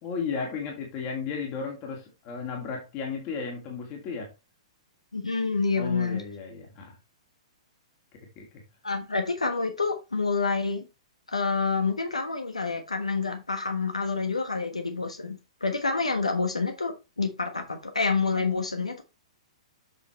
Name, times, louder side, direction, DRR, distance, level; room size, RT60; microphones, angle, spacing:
voice 1, 0.0-4.3 5.8-7.0 8.1-8.5, left 5 dB, 35° left, 2.4 m, -34 dB
voice 2, 5.1-6.2 8.8-10.8 11.3-19.0, left 4 dB, 85° left, 1.2 m, -28 dB
7.9 x 6.2 x 3.2 m
figure-of-eight pair, 110°, 3 cm